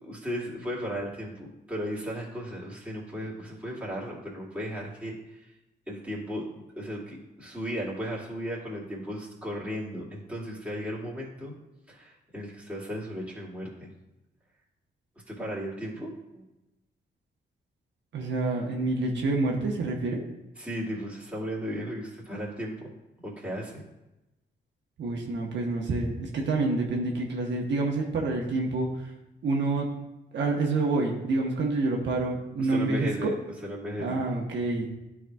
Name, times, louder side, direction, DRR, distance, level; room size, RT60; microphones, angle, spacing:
voice 1, 0.0-5.2 5.9-11.5 11.9-13.9 15.3-16.4 20.6-22.9 23.2-23.8 32.6-33.3 33.6-34.3, equal, 5° right, -6 dB, 2.2 m, -35 dB
voice 2, 18.1-20.2 25.0-29.1 29.4-29.9 30.3-33.3 34.0-34.9, right 3 dB, 75° right, 0 dB, 1.1 m, -27 dB
11.5 x 4.8 x 2.3 m, 0.96 s
cardioid pair, 100°, 19 cm